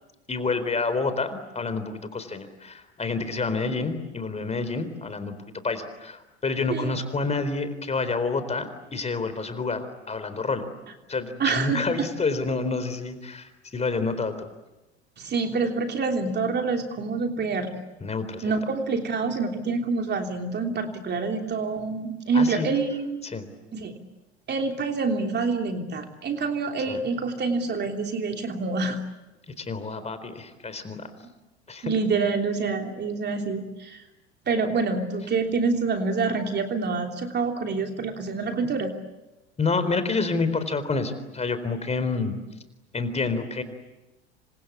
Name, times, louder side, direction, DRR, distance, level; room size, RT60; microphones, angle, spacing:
voice 1, 0.3-5.4 5.6-10.7 11.1-14.5 18.0-18.5 22.3-22.7 23.2-23.5 26.9-27.0 29.5-31.1 31.7-31.9 39.6-42.4 42.9-43.6, left 4 dB, 20° left, 11 dB, 4.0 m, -28 dB
voice 2, 11.4-12.1 15.2-17.8 18.4-23.2 23.7-24.0 24.5-29.0 31.8-34.0 34.5-38.9, right 4 dB, 30° right, 4 dB, 3.2 m, -27 dB
27.5 x 25.5 x 8.5 m, 1.0 s
hypercardioid pair, 80°, 33 cm